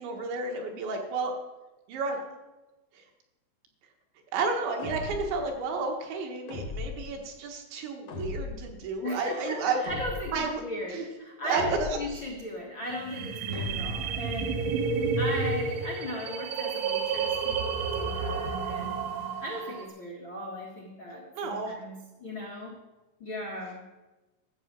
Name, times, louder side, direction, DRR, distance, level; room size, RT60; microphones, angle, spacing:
voice 1, 0.0-1.3 1.9-2.2 2.9-3.0 4.3-9.8 10.3-10.6 10.9-11.1 11.4-12.0 21.4-21.8, right 4 dB, 70° right, 2 dB, 3.8 m, -31 dB
sound 1, 4.8-5.4 6.5-7.2 8.1-8.7 9.8-10.5 11.5-12.2 13.5-14.2, left 2 dB, 65° left, 1.6 m, -38 dB
voice 2, 9.0-11.6 12.0-14.8 15.2-19.0 19.4-22.8 23.2-23.8, left 1 dB, 85° left, -3 dB, 1.1 m, -37 dB
sound 2, 12.9-19.9, right 5 dB, 90° right, 3.7 m, -31 dB
13.5 x 6.7 x 7.6 m, 1.1 s
omnidirectional pair, 5.5 m